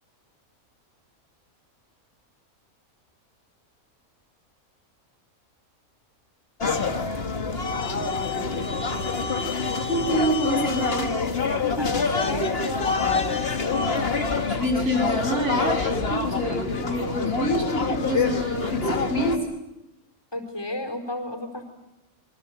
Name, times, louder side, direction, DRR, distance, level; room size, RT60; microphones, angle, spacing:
sound 1, 6.6-19.4, left 4 dB, 45° left, 1.9 m, -26 dB
voice 1, 9.8-11.2 14.5-19.5, equal, 55° right, 1 dB, 7.9 m, -26 dB
voice 2, 11.8-13.0 20.3-21.6, left 1 dB, 15° left, 5 dB, 4.5 m, -32 dB
27.5 x 24.5 x 8.0 m, 0.97 s
omnidirectional pair, 1.5 m